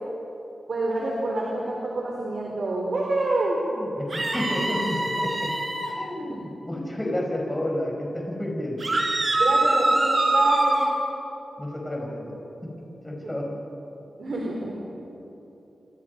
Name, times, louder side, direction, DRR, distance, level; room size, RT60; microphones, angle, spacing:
voice 1, 0.7-3.6 6.3-6.4 9.4-10.8 13.2-13.3 14.2-14.7, right 2 dB, 65° right, -2 dB, 4.3 m, -27 dB
voice 2, 3.7-5.5 5.9-8.8 11.6-13.6, left 1 dB, 10° left, -1 dB, 4.9 m, -31 dB
sound 1, 4.1-5.9 8.8-10.9, right 2 dB, 40° right, 4.6 m, -23 dB
29.5 x 24.0 x 5.4 m, 3.0 s
wide cardioid pair, 80°, 0 cm